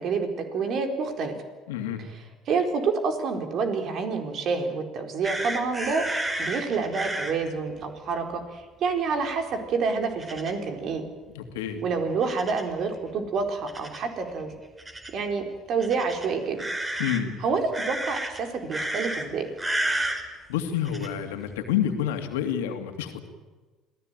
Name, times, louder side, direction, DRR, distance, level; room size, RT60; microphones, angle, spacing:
voice 1, 0.0-1.3 2.0-11.0 11.8-14.5 15.1-16.6 16.9-17.0 17.4-19.5, right 4 dB, 55° right, 5 dB, 4.3 m, -28 dB
voice 2, 1.7-2.0 11.3-11.8 17.0-17.4 20.5-23.2, left 9 dB, 80° left, 7 dB, 2.5 m, -28 dB
sound 1, 5.2-7.3 10.2-10.5 12.2-12.7 13.7-14.0 14.8-15.1 15.8-17.2 17.7-18.4 18.7-19.2 19.6-20.2 20.8-21.1, right 1 dB, 20° right, 4.4 m, -31 dB
27.0 x 17.0 x 9.1 m, 1.3 s
hypercardioid pair, 60°, 0 cm